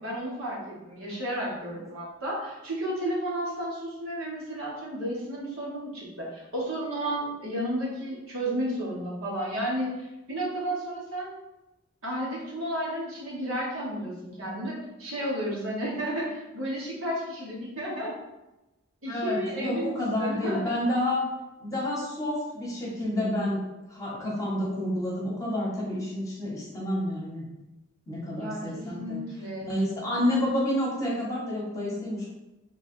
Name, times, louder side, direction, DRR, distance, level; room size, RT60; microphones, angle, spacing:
voice 1, 0.0-11.3 12.0-18.1 19.0-20.7 28.4-29.7, right 1 dB, 85° right, -5 dB, 1.3 m, -32 dB
voice 2, 19.1-21.2 21.6-23.6 23.9-27.4 28.1-29.2 29.7-32.3, left 1 dB, 15° left, -5 dB, 1.0 m, -29 dB
3.2 x 2.4 x 4.3 m, 1.0 s
head